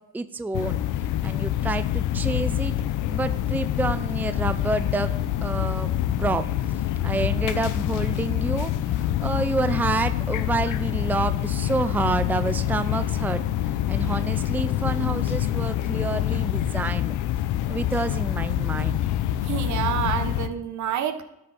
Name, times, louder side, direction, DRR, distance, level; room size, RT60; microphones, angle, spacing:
voice 1, 0.1-0.8 1.2-2.7 3.1-5.1 5.4-5.9 6.2-6.4 7.0-13.4 13.9-17.1 17.7-19.0, right 3 dB, 5° right, 11 dB, 0.5 m, -28 dB
sound 1, 0.5-20.5, left 12 dB, 85° left, 0.6 m, -26 dB
voice 2, 19.4-21.2, right 9 dB, 70° right, 10 dB, 1.1 m, -28 dB
12.5 x 6.4 x 4.1 m, 0.86 s
cardioid pair, 90°, 30 cm